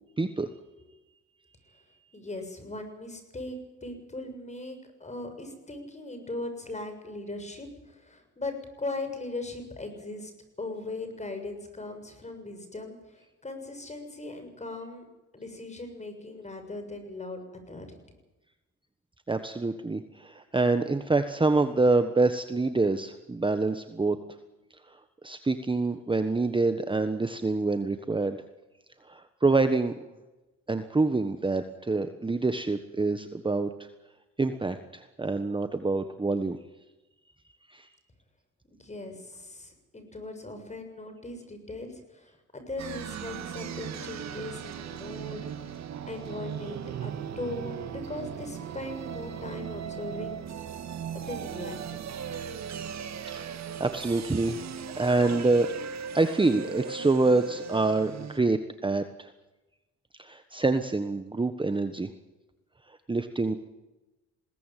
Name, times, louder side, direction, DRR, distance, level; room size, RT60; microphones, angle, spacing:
voice 1, 0.2-0.5 19.3-24.2 25.2-28.4 29.1-29.9 30.7-33.7 34.4-36.6 37.7-37.9 53.3-53.4 53.8-54.7 55.0-55.7 56.1-58.6 58.8-59.3 60.2-62.1 62.9-63.6, right 3 dB, 15° right, 9 dB, 1.3 m, -26 dB
voice 2, 2.1-3.6 3.8-10.3 10.6-15.0 15.3-17.4 17.7-17.9 38.7-45.7 46.1-50.4 51.1-52.0, left 2 dB, 25° left, 7 dB, 7.0 m, -39 dB
sound 1, 42.8-58.4, right 7 dB, 60° right, 2.2 m, -38 dB
21.5 x 18.0 x 9.2 m, 1.1 s
cardioid pair, 90°, 30 cm